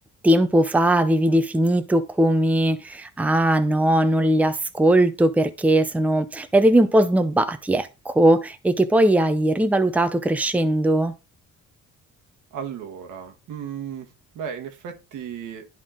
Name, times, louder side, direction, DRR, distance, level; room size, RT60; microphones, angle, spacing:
voice 1, 0.2-11.1, right 1 dB, 5° right, 0.6 m, -19 dB
voice 2, 12.5-15.7, right 8 dB, 85° right, 1.5 m, -35 dB
11.0 x 3.7 x 3.7 m
cardioid pair, 90°, 30 cm